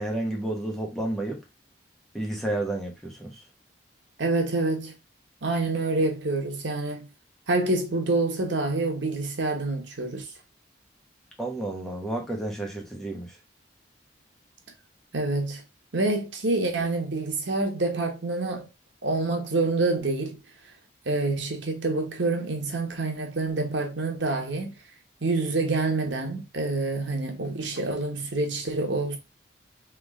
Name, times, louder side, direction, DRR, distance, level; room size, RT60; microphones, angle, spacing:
voice 1, 0.0-1.4 2.1-3.4 11.4-13.4, right 1 dB, ahead, 1.0 m, -31 dB
voice 2, 4.2-4.9 5.4-7.1 7.5-10.3 15.1-15.6 15.9-18.7 19.0-20.4 21.0-24.7 25.2-29.2, right 2 dB, 85° right, 1.2 m, -27 dB
3.6 x 3.4 x 3.7 m
head